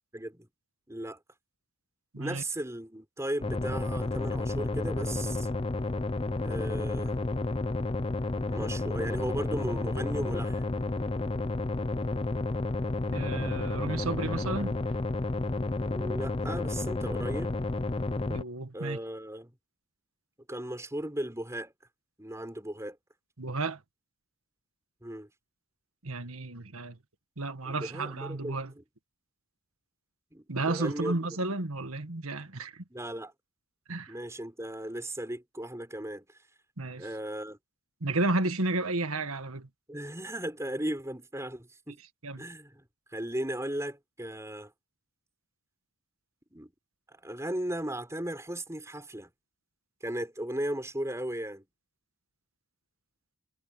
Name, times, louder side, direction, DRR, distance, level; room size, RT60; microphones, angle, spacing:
voice 1, 0.1-0.5 0.9-1.2 2.2-5.5 6.4-7.1 8.4-10.7 15.8-17.6 18.7-19.5 20.5-21.7 22.2-23.0 25.0-25.3 27.7-28.8 30.3-31.4 32.9-33.3 34.1-36.3 37.0-37.6 39.9-42.0 42.4-42.9 43.1-44.7 46.5-46.7 47.1-49.3 50.0-51.6, right 1 dB, 15° right, 5.2 m, -36 dB
sound 1, 3.4-18.4, left 2 dB, 25° left, 0.6 m, -31 dB
voice 2, 13.1-14.7 18.3-19.0 23.4-23.8 26.0-27.0 27.4-28.7 30.5-32.7 33.9-34.1 36.8-37.1 38.0-39.7 42.2-42.4, right 2 dB, 75° right, 1.8 m, -32 dB
head